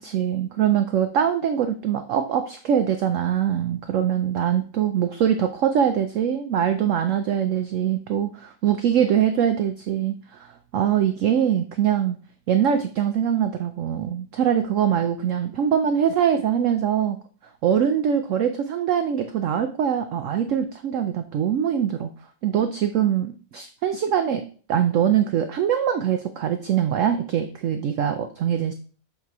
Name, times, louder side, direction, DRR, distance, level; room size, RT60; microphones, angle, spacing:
voice 1, 0.0-12.2 12.5-17.2 17.6-22.1 22.4-28.7, right 9 dB, 70° right, 8 dB, 0.7 m, -23 dB
7.3 x 2.8 x 4.6 m, 0.42 s
omnidirectional pair, 1.8 m